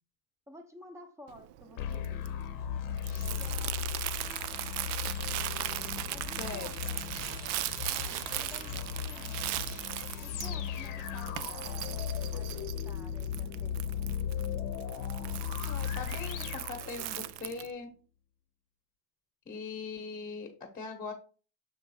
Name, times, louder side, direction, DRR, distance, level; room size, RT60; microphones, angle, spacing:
voice 1, 0.5-2.3 3.2-3.9 6.1-6.9 7.8-9.6 10.2-14.2, equal, 5° right, 5 dB, 0.9 m, -53 dB
Crumpling crinkling, 1.3-17.7, right 15 dB, 65° right, 0.5 m, -39 dB
sound 1, 1.8-17.4, left 9 dB, 45° left, 0.8 m, -37 dB
voice 2, 3.0-3.5 6.4-6.7 10.3-10.5 15.7-17.9 19.4-21.1, left 4 dB, 20° left, 2 dB, 1.1 m, -41 dB
7.1 x 3.3 x 4.8 m, 0.37 s
cardioid pair, 155°, 45 cm